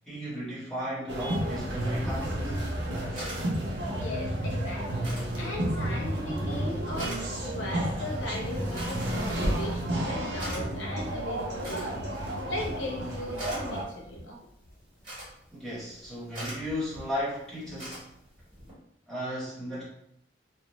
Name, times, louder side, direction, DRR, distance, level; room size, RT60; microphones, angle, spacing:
voice 1, 0.1-2.5 15.5-18.1 19.1-19.8, equal, 5° left, -9 dB, 1.0 m, -35 dB
sound 1, 1.1-13.8, right 1 dB, 70° right, 0.6 m, -31 dB
sound 2, 1.8-18.7, right 1 dB, 25° right, 1.3 m, -46 dB
voice 2, 3.9-5.1 5.4-7.2 7.5-12.0 12.5-14.4, left 1 dB, 85° left, -1 dB, 0.7 m, -38 dB
2.6 x 2.0 x 3.0 m, 0.74 s
head